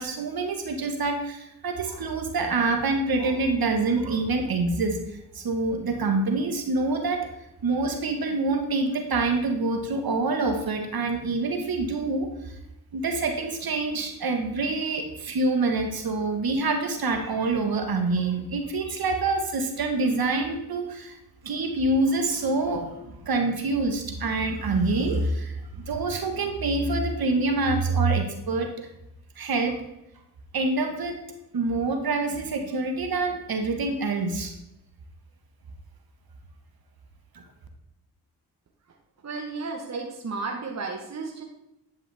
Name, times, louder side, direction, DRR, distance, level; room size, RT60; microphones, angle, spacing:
voice 1, 0.0-5.0 5.3-7.3 7.6-12.6 12.9-21.2 21.4-22.9 23.2-28.9 29.4-29.8 30.5-31.2 31.5-34.5 37.3-37.4, right 3 dB, 55° right, 4 dB, 1.5 m, -26 dB
voice 2, 39.2-41.4, right 4 dB, 35° right, 2 dB, 1.2 m, -33 dB
10.0 x 5.7 x 3.4 m, 0.86 s
supercardioid pair, 45°, 44 cm